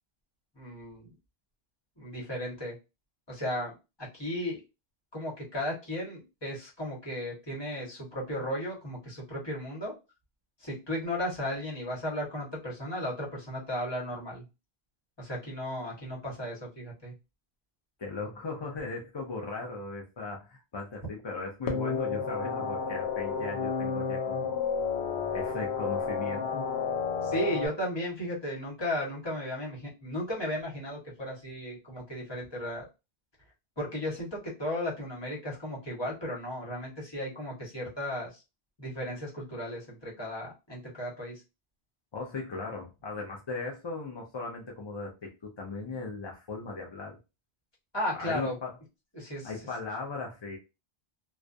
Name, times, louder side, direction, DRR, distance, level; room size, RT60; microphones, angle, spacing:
voice 1, 0.6-1.1 2.0-2.7 3.3-4.6 5.1-9.9 10.6-14.4 15.2-17.1 27.2-32.8 33.8-38.4 38.8-41.4 47.9-48.6 49.1-49.5, equal, 25° left, -4 dB, 1.1 m, -35 dB
voice 2, 18.0-24.8 25.3-26.7 42.1-47.2 48.1-48.7 49.4-50.6, left 3 dB, 40° left, -1 dB, 0.4 m, -38 dB
sound 1, 21.7-27.7, left 5 dB, 75° left, 0.9 m, -31 dB
2.3 x 2.2 x 2.5 m, 0.26 s
omnidirectional pair, 1.0 m